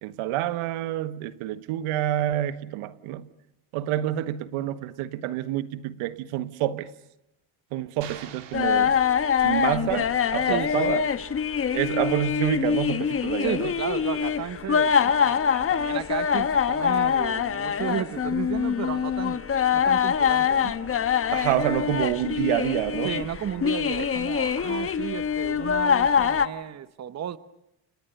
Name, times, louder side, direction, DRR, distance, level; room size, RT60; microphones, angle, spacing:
voice 1, 0.0-3.3 3.7-6.9 7.7-9.0 9.4-11.0 11.7-13.7 21.3-23.2 24.0-24.1, right 13 dB, 80° right, 1.7 m, -28 dB
sound 1, 8.0-9.7, right 9 dB, 55° right, 3.7 m, -45 dB
sound 2, 8.5-26.5, left 7 dB, 25° left, 1.1 m, -24 dB
voice 2, 10.5-11.0 13.4-19.4 19.7-20.7 23.0-27.4, right 10 dB, 30° right, 1.1 m, -33 dB
29.5 x 29.5 x 6.9 m
cardioid pair, 135°, 50 cm